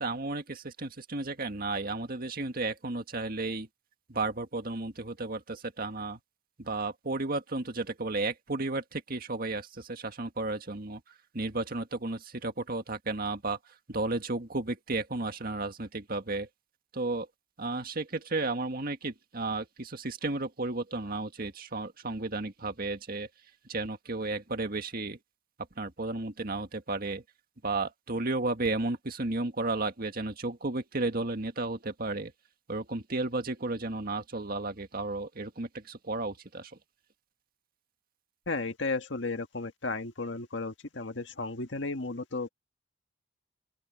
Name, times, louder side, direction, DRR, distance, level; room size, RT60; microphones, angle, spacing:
voice 1, 0.0-3.7 4.1-6.2 6.6-11.0 11.3-13.6 13.9-16.5 16.9-17.3 17.6-23.3 23.7-25.2 25.8-27.2 27.6-32.3 32.7-36.7, right 2 dB, 50° right, 1.8 m, -33 dB
voice 2, 38.5-42.5, left 3 dB, 70° left, 1.8 m, -34 dB
open air
head